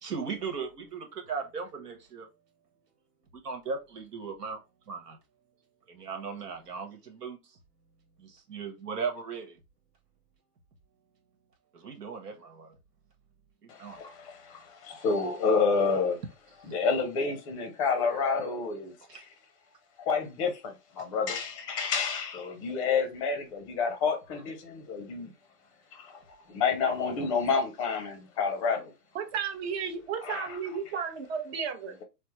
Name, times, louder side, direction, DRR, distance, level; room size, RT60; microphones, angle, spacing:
voice 1, 0.0-2.3 3.4-4.6 4.9-5.2 5.9-7.6 8.2-9.6 11.7-12.8 13.6-14.0 16.6-16.7 19.1-19.2, right 5 dB, 85° right, 1.2 m, -37 dB
voice 2, 13.7-16.2 16.6-19.3 20.1-25.3 26.0-26.2 26.5-28.9 30.2-30.6, left 5 dB, 20° left, 0.6 m, -29 dB
voice 3, 29.1-32.0, right 7 dB, 45° right, 0.8 m, -33 dB
3.4 x 2.0 x 3.0 m
hypercardioid pair, 145°, 47 cm